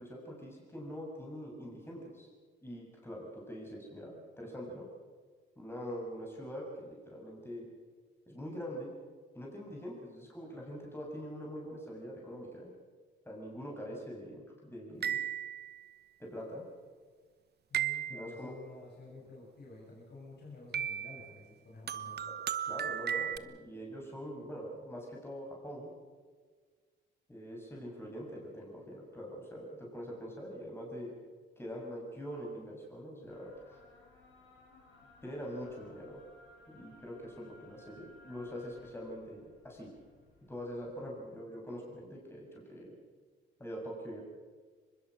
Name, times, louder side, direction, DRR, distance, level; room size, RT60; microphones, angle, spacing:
voice 1, 0.0-2.3 2.6-4.9 5.6-7.7 8.3-8.9 9.4-12.7 13.3-15.2 16.2-16.6 18.1-18.5 22.7-25.9 27.3-31.1 31.6-33.8 35.2-36.2 36.7-39.9 40.5-43.0 43.6-44.2, equal, 10° left, -2 dB, 7.2 m, -44 dB
sound 1, 15.0-15.8 17.7-18.5 20.7-21.3 21.9-23.4, right 9 dB, 55° right, 1.0 m, -35 dB
voice 2, 17.7-22.2, left 2 dB, 55° left, -4 dB, 7.1 m, -51 dB
sound 2, 33.3-40.9, left 2 dB, 80° left, 6.1 m, -60 dB
24.0 x 21.0 x 6.5 m, 1.5 s
cardioid pair, 90°, 20 cm